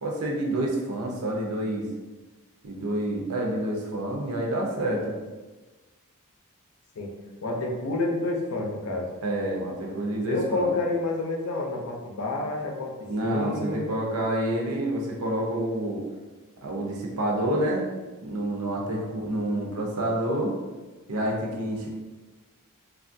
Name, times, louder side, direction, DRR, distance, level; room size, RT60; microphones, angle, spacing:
voice 1, 0.0-1.9 2.6-5.1 9.2-10.7 13.1-16.0 16.6-17.9 18.2-20.5 21.1-21.9, right 1 dB, 80° right, -1 dB, 0.6 m, -28 dB
voice 2, 7.4-9.1 10.3-13.9, left 2 dB, 75° left, 1 dB, 0.6 m, -29 dB
3.1 x 2.4 x 2.5 m, 1.2 s
head